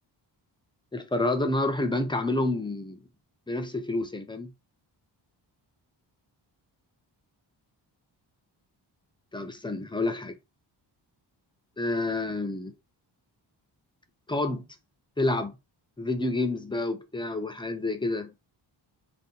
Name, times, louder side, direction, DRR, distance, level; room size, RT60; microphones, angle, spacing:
voice 1, 0.9-3.0 3.5-4.5 9.3-10.4 11.8-12.7 14.3-14.7 15.2-15.5 16.0-18.3, left 2 dB, 10° left, 0.3 m, -29 dB
2.7 x 2.1 x 3.7 m
wide cardioid pair, 135°, 44 cm